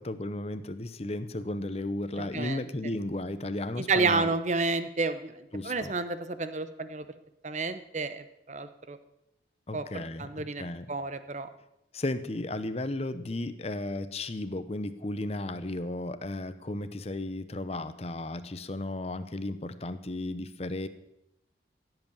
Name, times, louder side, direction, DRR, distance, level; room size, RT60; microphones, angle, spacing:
voice 1, 0.0-4.3 5.5-5.9 9.7-10.9 11.9-20.9, left 2 dB, 35° left, 11 dB, 0.8 m, -34 dB
voice 2, 2.2-2.6 3.8-7.0 7.4-9.0 9.7-9.8 10.2-11.5, right 3 dB, 40° right, 11 dB, 0.9 m, -30 dB
15.5 x 7.9 x 7.1 m, 0.86 s
head